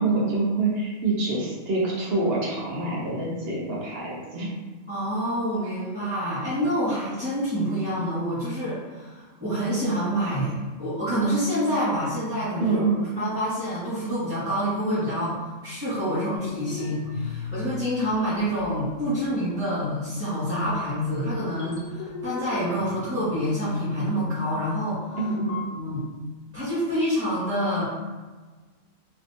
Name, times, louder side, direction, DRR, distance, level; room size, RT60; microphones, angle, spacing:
voice 1, 0.0-4.5 12.6-13.1 25.2-25.6, right 3 dB, 50° right, -4 dB, 1.0 m, -26 dB
voice 2, 4.9-12.8 13.2-25.2 25.7-26.1 26.5-27.8, equal, 10° right, -15 dB, 1.0 m, -27 dB
sound 1, 16.3-18.1 18.4-19.4 19.9-20.0 20.5-20.7 21.5-24.0 25.1-25.6, left 5 dB, 60° left, 0.5 m, -39 dB
3.3 x 2.9 x 2.6 m, 1.3 s
omnidirectional pair, 1.4 m